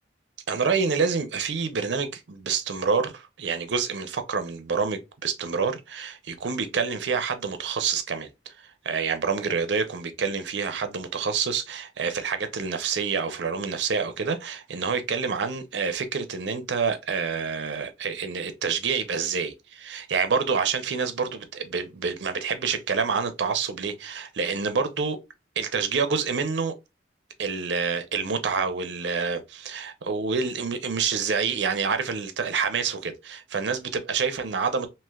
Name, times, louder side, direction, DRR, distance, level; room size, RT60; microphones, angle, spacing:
voice 1, 0.5-8.5 8.8-25.2 25.6-26.7 27.4-34.9, right 5 dB, 80° right, 0.6 m, -27 dB
3.1 x 2.8 x 2.3 m
head